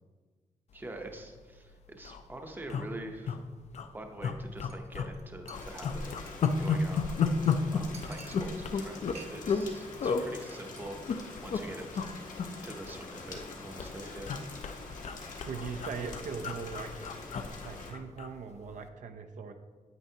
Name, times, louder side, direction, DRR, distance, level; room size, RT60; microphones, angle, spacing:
voice 1, 0.7-3.4 3.9-6.2 6.5-7.2 7.7-12.1 12.6-14.3, right 1 dB, 15° right, 4 dB, 0.7 m, -45 dB
sound 1, 1.2-1.4 1.7-1.8 2.0-2.2 2.7-3.4 3.7-3.9 4.2-5.1 5.4-9.7 10.0-10.2 10.8-11.6 11.9-12.1 12.4-13.5 13.8-18.3 18.7-18.9, left 6 dB, 55° left, 0.5 m, -32 dB
Chink clink, 4.7-4.9 5.1-5.2 5.5-6.8 7.1-7.2 7.4-7.5 7.9-8.8 9.1-9.7 9.9-10.2 10.5-10.8 11.1-11.3, right 4 dB, 55° right, 1.0 m, -52 dB
Rain, 5.5-17.9, left 3 dB, 70° left, 1.2 m, -45 dB
voice 2, 15.5-16.9 17.6-19.5, right 5 dB, 70° right, 5 dB, 0.6 m, -39 dB
9.2 x 8.9 x 2.8 m, 1.5 s
wide cardioid pair, 175°, 13 cm